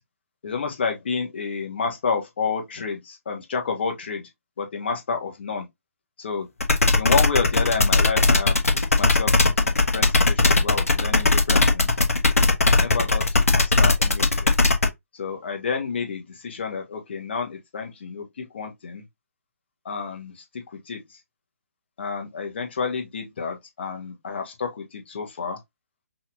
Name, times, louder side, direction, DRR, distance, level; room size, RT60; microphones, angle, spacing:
voice 1, 0.4-4.3 4.6-5.7 6.2-6.5 7.0-8.6 8.9-11.9 12.4-14.5 15.1-19.0 19.8-21.0 22.0-25.6, left 5 dB, 45° left, 1.3 m, -30 dB
sound 1, 6.6-14.9, left 3 dB, 70° left, 1.1 m, -18 dB
5.6 x 2.8 x 2.5 m
figure-of-eight pair, 135°, 8 cm